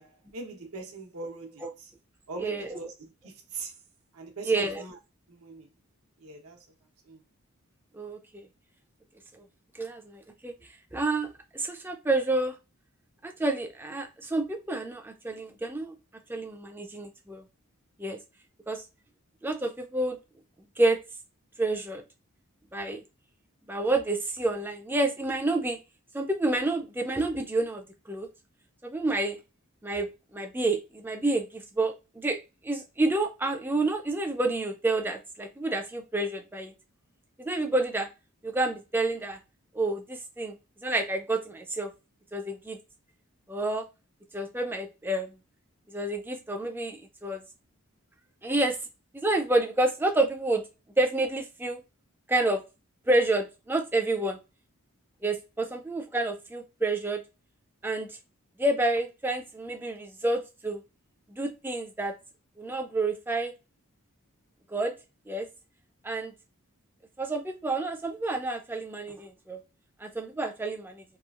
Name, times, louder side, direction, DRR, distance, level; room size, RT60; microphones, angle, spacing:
voice 1, 0.0-1.9 2.3-3.8 4.1-5.0 5.3-5.7 6.2-6.7 7.1-7.2, right 3 dB, 80° right, 0.9 m, -41 dB
voice 2, 4.4-4.8 7.9-8.5 9.4-9.5 9.7-10.5 10.9-12.5 13.2-16.0 16.3-17.4 18.0-18.2 18.7-18.8 19.4-20.2 20.8-21.0 21.6-22.0 22.7-23.0 23.7-25.8 26.1-28.3 28.8-29.4 29.8-32.4 32.6-36.7 37.4-38.1 38.4-39.4 39.7-40.6 40.8-41.9 42.3-42.8 43.5-43.8 44.3-45.3 45.9-47.4 48.4-48.8 49.1-50.6 51.0-51.8 52.3-52.6 53.1-54.4 55.2-57.2 57.8-58.2 58.6-60.8 61.3-62.1 62.6-63.5 64.7-64.9 65.3-65.5 66.0-66.3 67.2-69.6 70.0-71.0, right 2 dB, 10° right, 0.4 m, -29 dB
3.0 x 2.4 x 2.3 m
head